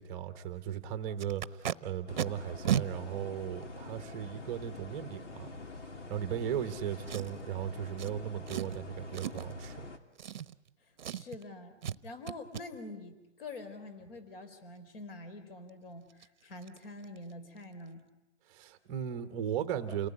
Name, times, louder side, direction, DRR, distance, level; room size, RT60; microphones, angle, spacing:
voice 1, 0.0-5.5 6.1-9.9 18.5-20.1, right 9 dB, 15° right, 9 dB, 1.0 m, -37 dB
Packing tape duct tape, 1.2-1.7 2.2-2.3 2.6-2.8 3.6-3.7 7.1-7.5 8.0-8.1 8.5-8.8 9.1-9.5 10.2-10.7 11.0-11.4 11.8-12.0 12.3-12.6 15.7-15.8 16.1-16.3 16.6-16.8 17.0-17.3 17.6-17.7, right 10 dB, 40° right, 0.9 m, -34 dB
sound 1, 2.1-10.0, left 3 dB, 85° left, 3.3 m, -46 dB
voice 2, 11.1-18.1, left 2 dB, 50° left, 10 dB, 4.4 m, -46 dB
29.5 x 19.0 x 9.9 m, 0.95 s
hypercardioid pair, 170°, 35 cm